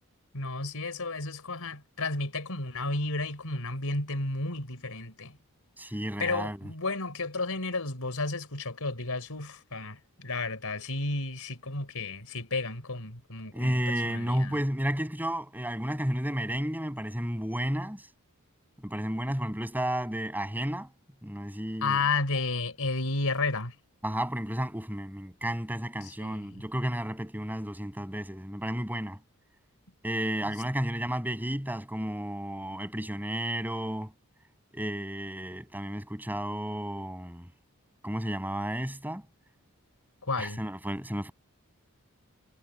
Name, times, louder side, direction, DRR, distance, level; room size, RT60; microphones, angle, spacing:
voice 1, 0.3-5.3 6.2-14.5 21.8-23.7 26.0-26.5 40.2-40.6, left 3 dB, 70° left, 5.1 m, -32 dB
voice 2, 5.8-6.7 13.5-18.0 18.8-20.9 21.2-22.0 24.0-29.2 30.0-34.1 34.7-37.5 38.0-39.2 40.4-41.3, equal, 10° right, 6.7 m, -32 dB
head